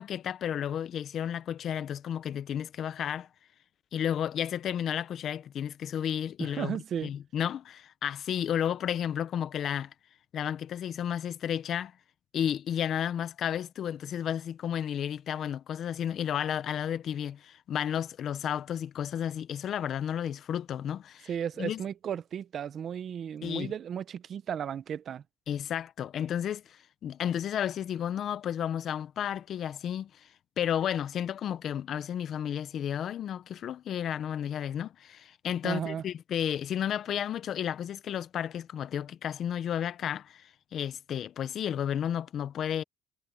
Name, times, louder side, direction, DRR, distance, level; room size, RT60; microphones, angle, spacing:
voice 1, 0.0-3.3 3.9-9.9 10.3-11.9 12.3-21.3 21.6-21.8 23.4-23.7 25.5-30.1 30.6-42.8, left 9 dB, 50° left, 0.8 m, -32 dB
voice 2, 6.4-7.1 21.3-25.2 35.6-36.0, right 8 dB, 45° right, 0.8 m, -34 dB
cardioid pair, 130°, 0 cm